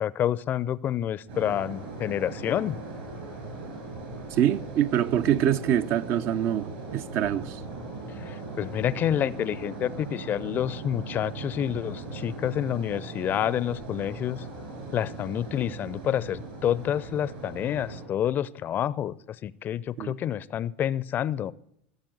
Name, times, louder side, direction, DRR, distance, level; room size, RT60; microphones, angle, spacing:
voice 1, 0.0-2.8 8.1-14.4 14.9-21.5, left 10 dB, 35° left, 0.5 m, -28 dB
sound 1, 1.3-18.1, right 3 dB, 70° right, 7.1 m, -39 dB
voice 2, 4.3-7.6 20.0-20.2, right 10 dB, 45° right, 0.6 m, -25 dB
16.5 x 7.5 x 9.0 m
figure-of-eight pair, 80°, 6 cm